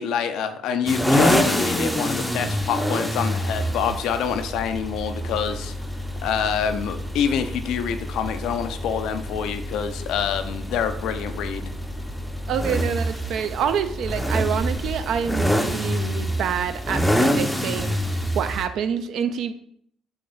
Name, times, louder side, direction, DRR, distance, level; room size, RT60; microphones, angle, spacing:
voice 1, 0.0-5.7 6.2-11.6, left 7 dB, 65° left, 9 dB, 0.4 m, -26 dB
sound 1, 0.9-18.7, equal, ahead, 0.5 m, -26 dB
sound 2, 3.5-15.2, equal, 40° right, 1.2 m, -42 dB
voice 2, 12.5-18.0 18.3-19.5, right 8 dB, 60° right, 9 dB, 0.3 m, -27 dB
3.8 x 2.9 x 3.9 m, 0.67 s
figure-of-eight pair, 50°, 0 cm